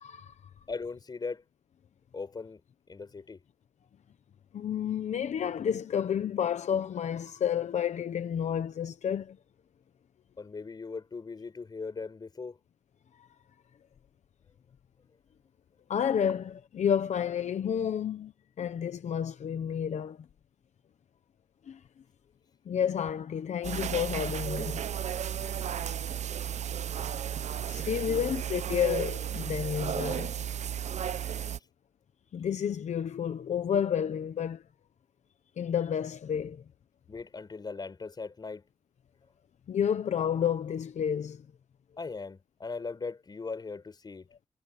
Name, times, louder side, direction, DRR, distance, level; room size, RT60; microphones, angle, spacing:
voice 1, 0.0-0.3 4.5-9.4 15.9-18.3 18.6-20.2 21.7-21.8 22.7-24.8 25.5-25.7 27.7-30.3 32.3-34.6 35.6-36.6 39.7-41.4, left 8 dB, 80° left, 0.9 m, -30 dB
voice 2, 0.7-1.4 2.1-2.6 2.9-3.4 10.4-12.6 28.1-28.5 37.1-38.6 42.0-44.3, left 4 dB, 35° left, 4.6 m, -39 dB
sound 1, 23.6-31.6, right 9 dB, 80° right, 0.8 m, -34 dB
wide cardioid pair, 155°, 12 cm